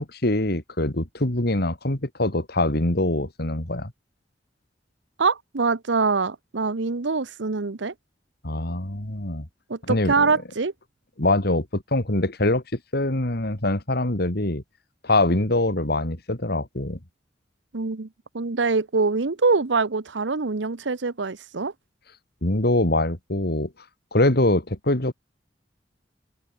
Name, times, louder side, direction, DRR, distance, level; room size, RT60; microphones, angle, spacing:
voice 1, 0.0-3.9 8.4-9.5 9.9-10.3 11.2-14.6 15.0-17.0 22.4-23.7 24.1-25.1, left 1 dB, 60° left, 3.0 m, -23 dB
voice 2, 5.2-7.9 9.7-10.7 17.7-18.1 18.3-21.7, right 4 dB, 85° right, 0.9 m, -24 dB
open air
head